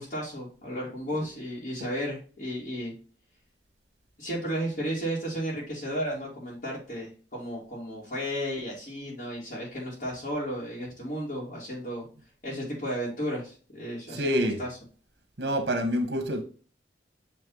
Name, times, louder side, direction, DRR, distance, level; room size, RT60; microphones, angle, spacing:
voice 1, 0.0-2.9 4.2-12.0 12.4-14.7, equal, 55° left, 2.3 m, -33 dB
voice 2, 14.1-14.6 15.4-16.4, equal, 70° right, 1.5 m, -27 dB
7.8 x 3.3 x 3.9 m
head